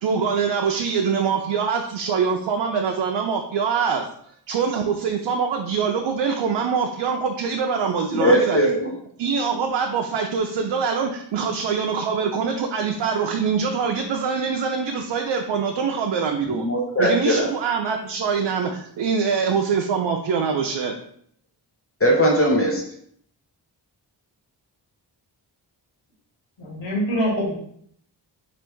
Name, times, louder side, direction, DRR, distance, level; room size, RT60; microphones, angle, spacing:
voice 1, 0.0-8.7 9.2-16.7 17.0-21.0, right 6 dB, 75° right, 3 dB, 0.5 m, -24 dB
voice 2, 8.1-8.9 16.5-17.5 22.0-22.8, equal, 30° left, -2 dB, 0.9 m, -19 dB
voice 3, 26.6-27.5, equal, 85° left, -4 dB, 1.7 m, -24 dB
3.3 x 2.5 x 4.5 m, 0.66 s
wide cardioid pair, 85°, 43 cm